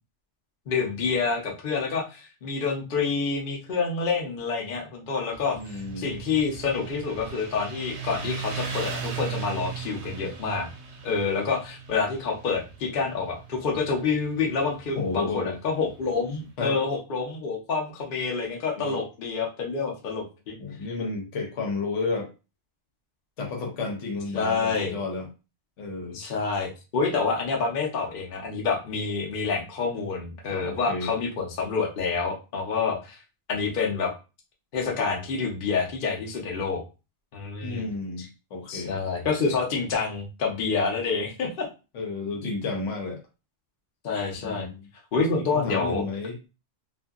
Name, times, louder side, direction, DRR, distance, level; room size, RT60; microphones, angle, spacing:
voice 1, 0.7-10.7 11.0-20.6 24.3-24.9 26.1-33.2 33.5-34.1 34.7-36.8 37.3-37.9 38.2-38.3 38.7-41.7 44.0-44.7 45.1-46.0, left 4 dB, 50° left, 0 dB, 0.8 m, -28 dB
Motorcycle, 5.3-16.4, right 7 dB, 70° right, 0.9 m, -38 dB
voice 2, 5.5-6.1 15.0-15.6 16.6-16.8 18.7-19.0 20.6-22.3 23.4-25.3 25.8-26.2 30.5-31.1 37.6-39.0 39.5-39.6 41.9-43.2 44.4-44.9 45.5-46.5, left 3 dB, 85° left, 1 dB, 1.1 m, -32 dB
2.7 x 2.6 x 2.4 m, 0.30 s
omnidirectional pair, 1.2 m